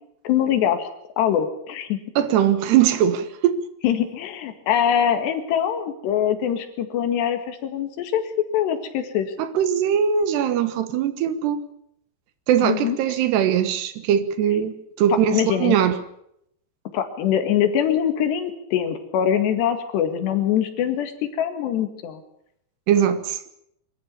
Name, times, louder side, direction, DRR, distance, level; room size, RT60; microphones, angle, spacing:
voice 1, 0.2-0.9 1.2-2.0 3.8-9.3 12.6-13.0 15.3-15.8 16.9-21.1 21.4-22.2, left 9 dB, 85° left, 4.1 m, -23 dB
voice 2, 2.2-3.7 9.4-11.6 12.5-16.0 22.9-23.5, right 9 dB, 85° right, 3.5 m, -21 dB
24.0 x 14.5 x 8.6 m
omnidirectional pair, 4.8 m